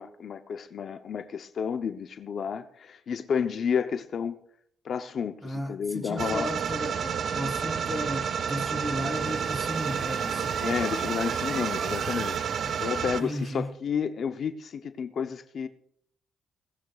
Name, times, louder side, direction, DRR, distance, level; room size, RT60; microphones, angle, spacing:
voice 1, 0.0-4.4 4.8-6.5 10.6-15.7, left 7 dB, 55° left, 0.7 m, -31 dB
voice 2, 5.4-10.8 12.6-12.7 13.2-13.7, equal, 5° right, 3.1 m, -35 dB
sound 1, 6.2-13.2, right 7 dB, 55° right, 0.5 m, -30 dB
sound 2, 8.5-13.5, right 7 dB, 70° right, 1.3 m, -41 dB
21.0 x 18.0 x 2.4 m
cardioid pair, 90°, 0 cm